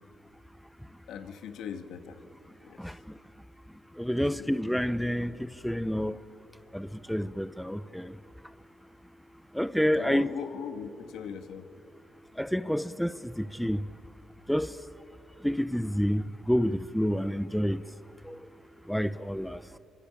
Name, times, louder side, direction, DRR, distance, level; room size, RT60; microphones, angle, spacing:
voice 1, 1.1-2.2 2.6-2.8 4.2-4.5 9.9-11.7, left 7 dB, 80° left, 1.8 m, -39 dB
voice 2, 4.0-5.3 5.6-6.2 6.7-8.1 9.5-10.3 12.4-13.8 14.5-14.7 15.4-17.8 18.3-18.4 18.9-19.6, equal, ahead, 0.7 m, -28 dB
24.5 x 24.5 x 8.8 m
cardioid pair, 90°, 0 cm